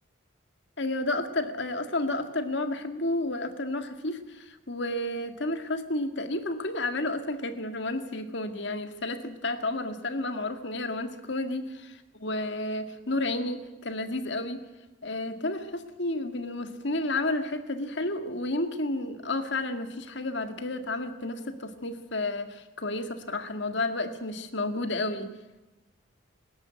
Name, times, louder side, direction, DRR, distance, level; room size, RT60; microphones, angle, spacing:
voice 1, 0.8-14.6 15.0-25.3, left 2 dB, 60° left, 7 dB, 1.8 m, -31 dB
21.5 x 13.0 x 9.4 m, 1.1 s
head